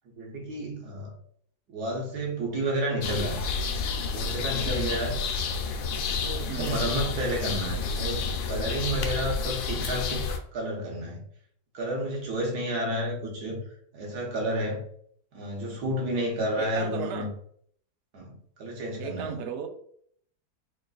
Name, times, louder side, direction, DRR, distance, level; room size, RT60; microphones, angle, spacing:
voice 1, 0.0-1.1 1.7-3.4 4.1-5.2 6.2-10.2 10.5-11.2 11.7-13.6 13.9-14.8 15.3-17.3 18.1-19.4, right 1 dB, 90° right, -1 dB, 1.7 m, -31 dB
sound 1, 3.0-10.4, left 5 dB, 85° left, 1.2 m, -30 dB
voice 2, 4.6-5.0 6.5-6.7 16.6-17.3 19.0-19.7, right 7 dB, 65° right, 6 dB, 0.8 m, -35 dB
3.8 x 2.4 x 3.9 m, 0.64 s
omnidirectional pair, 1.6 m